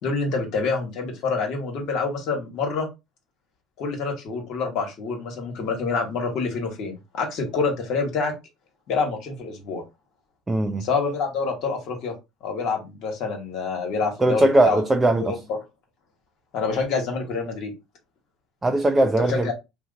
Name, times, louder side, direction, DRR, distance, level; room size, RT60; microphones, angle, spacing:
voice 1, 0.0-2.9 3.8-8.3 8.9-9.8 10.8-12.1 12.4-14.8 15.3-15.4 16.5-17.7 19.2-19.5, left 4 dB, 60° left, 1.1 m, -27 dB
voice 2, 10.5-10.8 14.2-15.4 18.6-19.5, right 1 dB, 20° right, 0.4 m, -20 dB
2.7 x 2.1 x 3.8 m
supercardioid pair, 85°, 0 cm